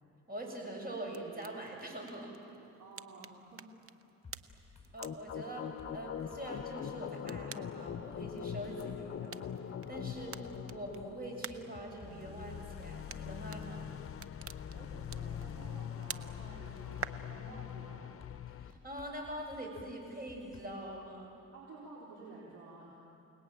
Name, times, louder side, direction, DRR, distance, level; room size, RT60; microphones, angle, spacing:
voice 1, 0.3-2.3 4.9-9.5 9.9-10.4 10.7-13.9 18.5-21.3, right 1 dB, 30° right, 1 dB, 7.6 m, -43 dB
sound 1, 0.9-17.1, right 7 dB, 45° right, 0.9 m, -51 dB
voice 2, 2.8-3.8 14.7-18.2 21.5-23.0, right 2 dB, 80° right, -4 dB, 4.4 m, -52 dB
sound 2, 4.2-4.9 5.3-5.4 5.8-7.5 7.8-9.0 9.4-9.5 9.9-13.2 13.5-13.7 14.1-15.7 16.1-17.3 17.7-17.8 18.2-20.7, left 4 dB, 20° left, 6.5 m, -56 dB
sound 3, 5.0-18.7, left 9 dB, 50° left, 0.8 m, -43 dB
29.0 x 19.5 x 9.1 m, 2.7 s
cardioid pair, 90°, 30 cm